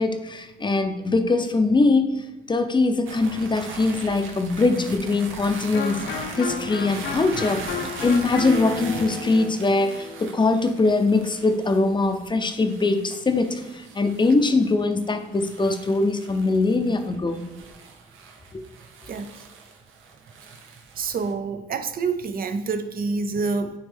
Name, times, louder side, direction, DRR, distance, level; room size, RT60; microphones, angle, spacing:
voice 1, 0.0-2.0 2.5-6.1 6.4-7.7 8.0-13.6 13.9-17.4, left 3 dB, 25° left, 7 dB, 0.7 m, -22 dB
sound 1, 3.1-21.3, right 5 dB, 85° right, 0.9 m, -41 dB
Electric guitar, 5.7-11.3, left 5 dB, 75° left, 0.8 m, -33 dB
voice 2, 21.0-23.7, right 4 dB, 50° right, 9 dB, 0.6 m, -27 dB
9.4 x 3.1 x 3.5 m, 1.2 s
cardioid pair, 90°, 20 cm